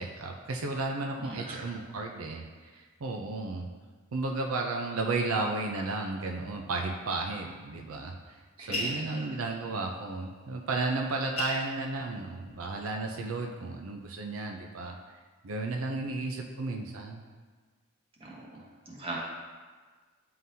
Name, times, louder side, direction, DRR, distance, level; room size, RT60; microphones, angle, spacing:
voice 1, 0.0-3.7 4.1-15.0 15.4-17.2, right 3 dB, 80° right, 2 dB, 0.5 m, -33 dB
voice 2, 1.2-1.6 8.6-9.2 18.2-19.2, right 2 dB, 25° right, -3 dB, 1.1 m, -41 dB
sound 1, 8.7-9.7 10.8-10.9 11.1-12.8 13.2-13.9, left 1 dB, 30° left, 0.9 m, -36 dB
9.1 x 3.8 x 2.7 m, 1.4 s
head